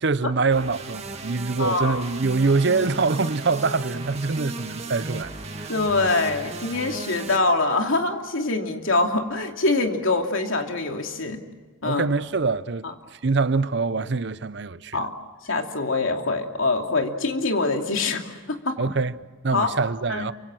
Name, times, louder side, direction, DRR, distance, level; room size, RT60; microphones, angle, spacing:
voice 1, 0.0-5.3 5.6-5.7 11.8-15.0 18.8-19.1 19.4-20.3, right 4 dB, 60° right, 0.7 m, -24 dB
sound 1, 0.5-7.4, right 2 dB, 30° right, 2.0 m, -36 dB
voice 2, 1.6-2.0 5.7-11.4 11.8-12.0 12.8-12.9 14.9-15.1 15.4-18.7 19.5-19.7 20.1-20.3, left 3 dB, 85° left, 2.7 m, -24 dB
29.5 x 25.0 x 6.2 m
head